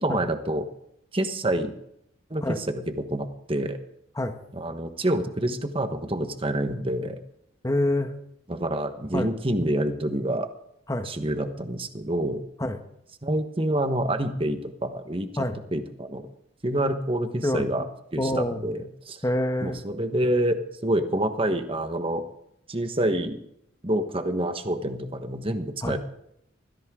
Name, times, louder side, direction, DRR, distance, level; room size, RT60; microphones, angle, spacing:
voice 1, 0.0-0.6 1.1-1.7 2.3-3.8 4.5-7.2 8.5-10.5 11.0-12.4 13.2-15.4 15.7-16.3 16.6-17.8 18.1-19.2 19.6-22.2 22.7-23.4 23.8-26.0, right 1 dB, 30° right, 8 dB, 1.2 m, -27 dB
voice 2, 7.6-8.1 9.1-9.3 10.9-11.1 12.6-12.8 15.4-15.6 17.4-17.7 18.2-18.7 19.2-19.8 25.8-26.0, left 1 dB, 15° left, 7 dB, 1.2 m, -26 dB
21.5 x 16.0 x 3.8 m, 0.75 s
head